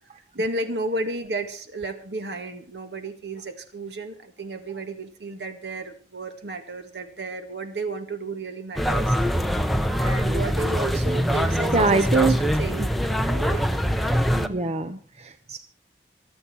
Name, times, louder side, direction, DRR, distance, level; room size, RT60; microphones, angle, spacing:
voice 1, 0.3-9.2 10.0-12.9 13.3-13.6 14.3-14.7, right 2 dB, 75° right, 7 dB, 2.2 m, -32 dB
sound 1, 8.8-14.5, equal, ahead, 0.9 m, -23 dB
voice 2, 11.7-12.3 14.5-15.6, right 3 dB, 40° right, 10 dB, 0.8 m, -23 dB
25.0 x 8.6 x 4.6 m, 0.40 s
head